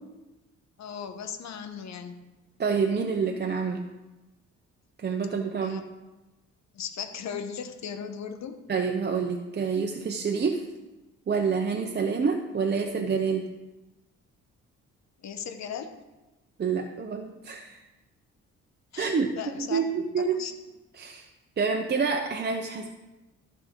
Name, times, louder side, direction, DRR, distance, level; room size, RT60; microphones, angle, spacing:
voice 1, 0.8-2.2 5.6-5.9 6.7-8.6 15.2-15.9 18.9-19.8 20.3-20.5, left 7 dB, 65° left, 7 dB, 1.0 m, -37 dB
voice 2, 2.6-3.8 5.0-5.9 8.7-10.6 11.3-13.5 16.6-17.8 19.0-19.3 19.6-20.3 21.0-21.3 21.6-22.9, right 5 dB, 35° right, 3 dB, 0.7 m, -27 dB
14.0 x 5.1 x 3.7 m, 1.1 s
cardioid pair, 90°, 30 cm